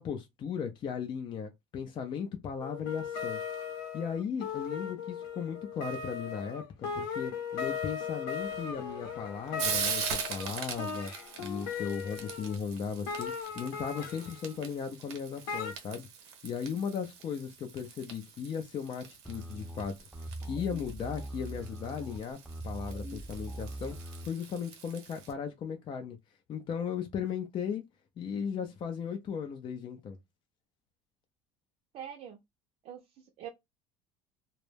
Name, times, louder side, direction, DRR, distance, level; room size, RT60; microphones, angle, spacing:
voice 1, 0.0-3.4 3.9-11.1 11.4-16.1 16.4-20.1 20.4-26.2 26.5-27.8 28.2-30.2, left 7 dB, 40° left, 0.4 m, -37 dB
sound 1, 2.6-12.6 13.1-14.5 15.5-15.7, left 6 dB, 80° left, 0.8 m, -38 dB
Frying (food), 8.4-25.3, right 7 dB, 90° right, 0.9 m, -42 dB
sound 2, 19.2-24.3, right 1 dB, ahead, 0.6 m, -41 dB
voice 2, 31.9-32.4 32.8-33.5, right 9 dB, 50° right, 0.5 m, -44 dB
2.2 x 2.0 x 3.2 m
supercardioid pair, 105°, 13 cm